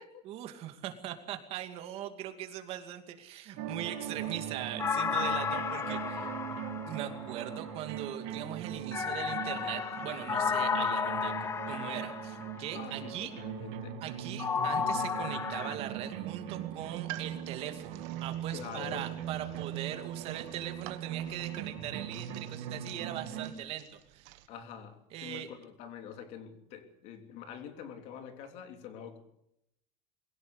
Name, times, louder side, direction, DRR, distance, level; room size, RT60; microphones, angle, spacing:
voice 1, 0.2-6.3 6.8-11.4 11.7-13.3 14.0-24.4 25.1-25.5, right 11 dB, 45° right, 7 dB, 2.5 m, -40 dB
sound 1, 3.6-23.5, right 9 dB, 85° right, 2.9 m, -40 dB
sound 2, 4.8-7.6 8.9-12.7 14.4-15.7, left 6 dB, 20° left, 0.8 m, -33 dB
voice 2, 12.7-14.0 14.5-14.7 18.5-19.1 24.5-29.2, left 8 dB, 55° left, 6 dB, 3.4 m, -45 dB
sound 3, 16.8-24.5, right 15 dB, 65° right, 1.6 m, -49 dB
22.5 x 17.0 x 8.2 m, 0.78 s
cardioid pair, 175°, 13 cm